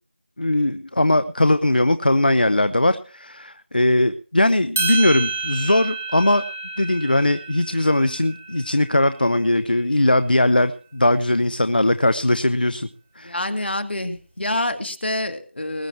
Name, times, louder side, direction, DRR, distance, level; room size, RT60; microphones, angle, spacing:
voice 1, 0.4-6.4 6.8-12.9 13.2-13.3, left 1 dB, 55° left, 12 dB, 0.7 m, -19 dB
sound 1, 4.8-9.2, right 4 dB, 10° right, 1.0 m, -30 dB
voice 2, 13.2-15.9, left 1 dB, 70° left, 8 dB, 2.1 m, -27 dB
20.0 x 9.2 x 4.5 m, 0.39 s
figure-of-eight pair, 180°, 6 cm